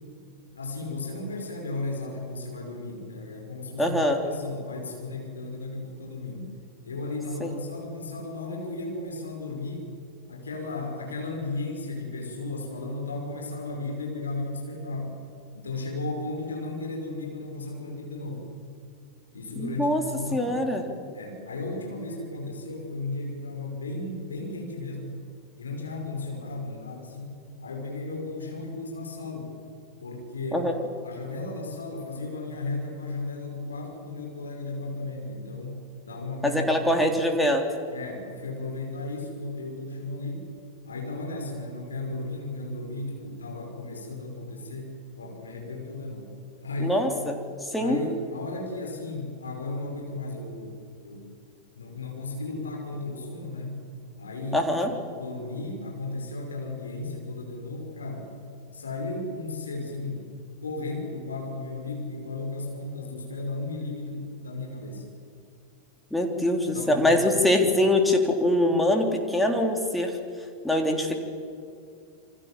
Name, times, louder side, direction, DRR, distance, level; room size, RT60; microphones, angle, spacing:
voice 1, 0.5-6.6 6.8-9.9 10.3-15.2 15.5-18.5 19.3-20.5 21.1-25.2 25.6-29.5 30.0-30.7 31.0-36.9 37.9-40.5 40.8-46.3 46.6-47.0 47.8-51.3 51.7-53.8 54.2-54.7 55.2-58.3 58.7-60.3 60.6-65.1 66.6-67.4, left 2 dB, 70° left, 1 dB, 5.6 m, -35 dB
voice 2, 3.8-4.2 7.4-7.5 19.6-20.0 20.3-20.8 30.5-30.7 36.4-37.6 46.8-47.3 47.6-48.0 54.5-54.9 66.1-70.1 70.6-71.2, left 1 dB, 5° left, 3 dB, 3.5 m, -23 dB
28.5 x 25.0 x 7.6 m, 2.4 s
figure-of-eight pair, 90°, 0 cm